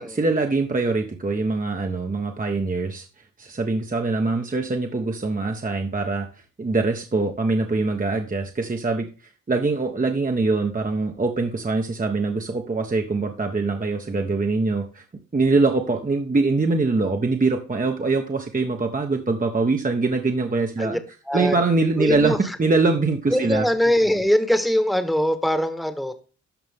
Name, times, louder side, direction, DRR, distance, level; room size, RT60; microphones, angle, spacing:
voice 1, 0.0-3.0 3.4-6.3 6.6-9.1 9.5-15.0 15.3-21.0 21.3-23.7, right 3 dB, 25° right, 3 dB, 1.1 m, -23 dB
voice 2, 21.3-21.6 22.0-22.6 23.3-26.1, equal, ahead, 9 dB, 1.4 m, -21 dB
13.0 x 5.3 x 3.6 m, 0.36 s
cardioid pair, 75°, 31 cm